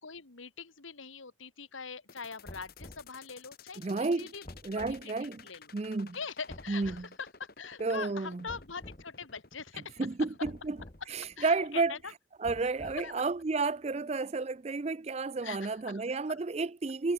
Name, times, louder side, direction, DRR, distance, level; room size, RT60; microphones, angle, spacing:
voice 1, 0.0-3.8 4.2-4.4 4.8-5.1 5.4-5.7 6.1-10.0 11.4-12.1 13.0-13.1 15.4-15.9, left 5 dB, 80° left, 1.9 m, -43 dB
sound 1, 2.1-12.1, left 5 dB, 50° left, 3.9 m, -54 dB
sound 2, 2.4-3.1 4.4-5.0 6.5-7.1 8.5-9.0 10.4-11.0 12.4-13.2, left 1 dB, 30° left, 1.3 m, -48 dB
voice 2, 3.8-4.3 4.6-5.5 5.7-6.2 6.7-7.1 7.8-8.5 10.0-10.8 11.1-12.0 12.4-17.1, right 3 dB, 30° right, 0.4 m, -31 dB
head